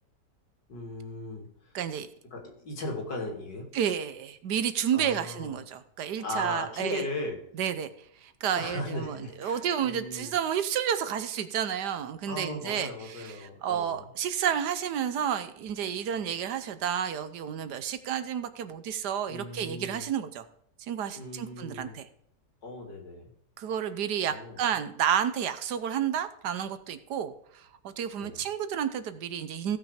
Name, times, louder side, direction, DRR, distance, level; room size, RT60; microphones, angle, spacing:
voice 1, 0.7-1.7 2.3-3.7 4.9-5.6 6.2-7.4 8.5-10.3 12.3-14.0 19.3-20.1 21.1-22.0 22.6-23.2 24.2-24.7 28.2-28.4, left 2 dB, 85° left, 1 dB, 3.2 m, -37 dB
voice 2, 1.7-2.1 3.7-7.0 7.6-7.9 8.2-20.4 20.8-22.1 23.6-29.8, right 9 dB, 70° right, 11 dB, 1.4 m, -31 dB
16.0 x 5.9 x 5.0 m, 0.70 s
omnidirectional pair, 1.9 m